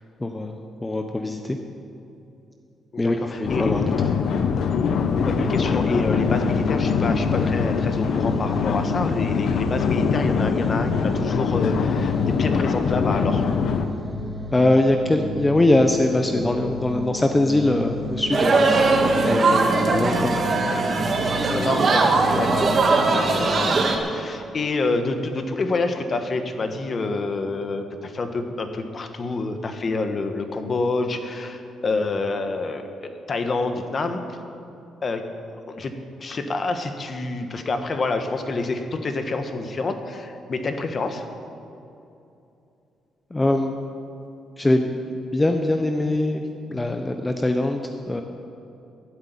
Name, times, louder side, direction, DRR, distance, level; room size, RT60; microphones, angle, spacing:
voice 1, 0.2-1.6 3.0-4.1 14.5-19.0 19.2-20.5 43.3-43.7 44.6-44.9 45.3-46.4 46.7-48.2, left 1 dB, 15° left, 5 dB, 0.8 m, -22 dB
voice 2, 2.9-3.8 4.9-13.5 21.5-34.4 35.0-35.2 35.5-41.3, left 3 dB, 40° left, 7 dB, 1.3 m, -28 dB
sound 1, 3.4-13.9, left 6 dB, 70° left, 0.9 m, -23 dB
sound 2, 5.2-23.3, left 1 dB, 10° right, 1.8 m, -34 dB
sound 3, 18.3-24.0, right 3 dB, 45° right, 1.7 m, -20 dB
12.5 x 8.0 x 9.3 m, 2.7 s
cardioid pair, 90°, 0 cm